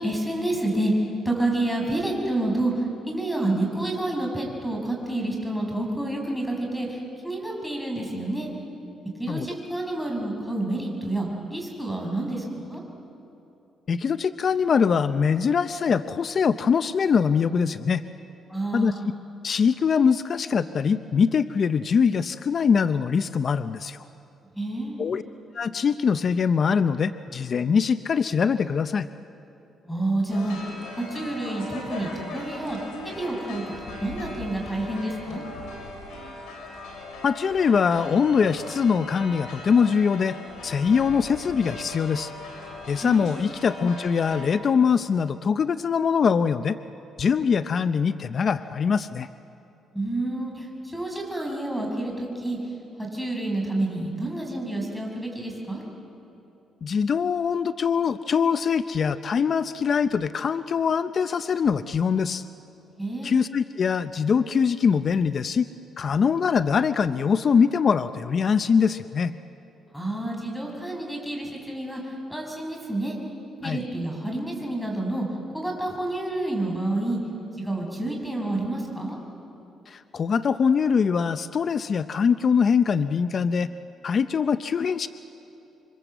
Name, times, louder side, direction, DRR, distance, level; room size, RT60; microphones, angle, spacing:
voice 1, 0.0-8.5 9.2-12.8 18.5-19.1 24.5-25.0 29.8-30.6 31.0-32.8 33.0-35.4 42.9-43.3 49.9-50.7 50.9-52.6 53.0-55.8 63.0-63.3 69.9-72.0 72.3-73.1 73.6-75.3 75.5-77.2 77.6-79.2, right 2 dB, 5° left, 1 dB, 6.5 m, -29 dB
voice 2, 13.9-18.0 18.7-18.9 19.4-24.0 25.0-25.2 25.5-29.1 37.2-40.4 40.6-42.3 42.9-46.8 47.2-49.3 56.8-62.4 63.2-65.7 66.0-69.3 73.6-73.8 79.9-83.7 84.0-85.1, left 6 dB, 50° left, 12 dB, 0.6 m, -23 dB
sound 1, 30.3-44.4, left 2 dB, 80° left, 6.5 m, -39 dB
27.5 x 24.5 x 8.0 m, 2.9 s
cardioid pair, 90°, 0 cm